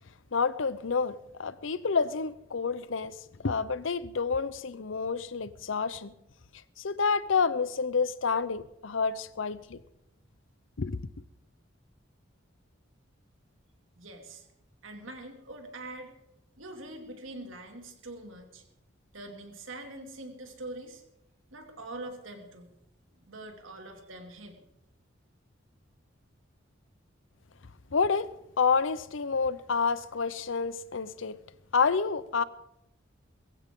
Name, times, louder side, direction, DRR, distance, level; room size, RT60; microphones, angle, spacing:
voice 1, 0.3-6.1 6.8-9.8 10.8-11.0 27.9-31.4 31.7-32.4, left 5 dB, 75° left, 0.7 m, -29 dB
voice 2, 14.0-14.5 14.8-16.1 16.6-18.6 19.1-21.0 21.5-22.7 23.2-24.6, right 2 dB, 90° right, 2.5 m, -44 dB
21.0 x 15.5 x 3.7 m
head